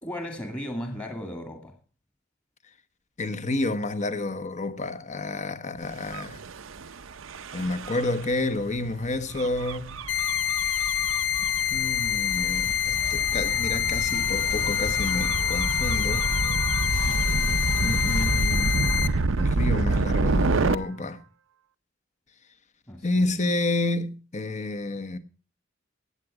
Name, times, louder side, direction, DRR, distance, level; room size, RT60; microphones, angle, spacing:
voice 1, 0.0-1.8 17.1-17.7 22.9-23.3, equal, 20° left, 2.0 m, -36 dB
voice 2, 3.2-6.4 7.5-10.1 11.7-16.3 17.8-19.0 19.4-21.2 23.0-25.2, left 2 dB, 40° left, 1.2 m, -30 dB
Gull seagull / Waves surf / Siren, 6.0-20.8, right 3 dB, 85° right, 0.7 m, -28 dB
sound 1, 10.1-19.1, left 10 dB, 60° left, 0.8 m, -26 dB
17.0 x 8.1 x 4.9 m
head